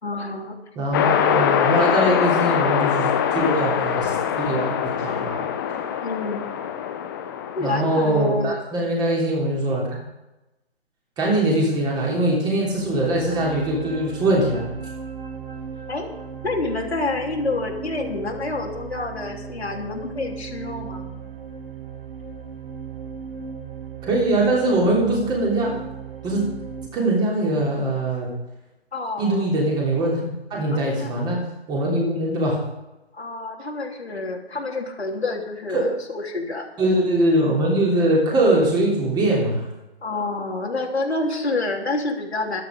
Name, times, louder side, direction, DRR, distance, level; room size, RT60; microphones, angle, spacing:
voice 1, 0.0-0.6 6.0-6.5 7.5-8.6 15.9-16.1 16.4-21.2 28.9-29.4 30.7-31.1 33.1-36.7 40.0-42.6, left 2 dB, 80° left, 0 dB, 3.3 m, -28 dB
voice 2, 0.7-5.5 7.6-9.9 11.2-14.7 24.0-25.8 26.2-26.5 26.9-28.3 29.2-31.4 31.7-32.6 35.7-35.8 36.8-39.6, right 1 dB, 15° right, -2 dB, 3.3 m, -22 dB
sound 1, 0.9-8.3, left 9 dB, 20° left, 0.8 m, -23 dB
sound 2, 12.5-26.9, right 6 dB, 65° right, 3.1 m, -37 dB
14.0 x 12.5 x 5.2 m, 0.97 s
figure-of-eight pair, 145°, 32 cm